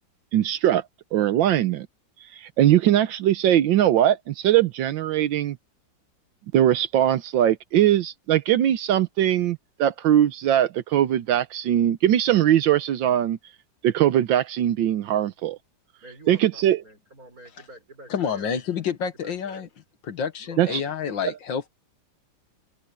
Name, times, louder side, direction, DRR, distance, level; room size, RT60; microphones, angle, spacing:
voice 1, 0.3-0.8 1.1-1.9 2.2-5.6 6.5-13.4 13.8-15.6 16.3-16.8 20.6-20.8, right 11 dB, 80° right, 1.5 m, -21 dB
voice 2, 16.0-18.5 19.2-19.7 20.4-21.2, right 1 dB, 45° right, 6.7 m, -47 dB
voice 3, 18.1-19.7 20.1-21.7, left 7 dB, 80° left, 2.1 m, -28 dB
omnidirectional pair, 2.0 m